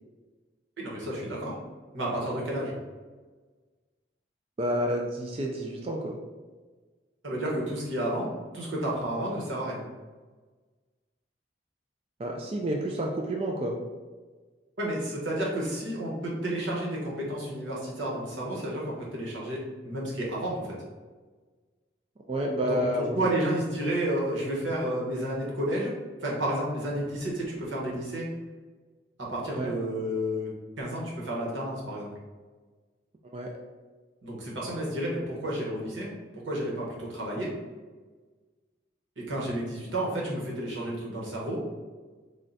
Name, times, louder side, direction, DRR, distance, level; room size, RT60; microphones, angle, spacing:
voice 1, 0.8-1.6 1.9-2.7 7.2-9.8 14.8-20.7 22.7-22.8 23.2-25.9 26.2-28.3 29.2-32.1 34.2-36.1 36.4-37.5 39.2-41.6, right 1 dB, 90° right, -3 dB, 1.1 m, -31 dB
voice 2, 4.6-6.2 12.2-13.8 22.3-23.2 29.6-29.7 33.2-33.5, equal, 30° right, 0 dB, 0.3 m, -29 dB
3.6 x 2.2 x 3.9 m, 1.3 s
head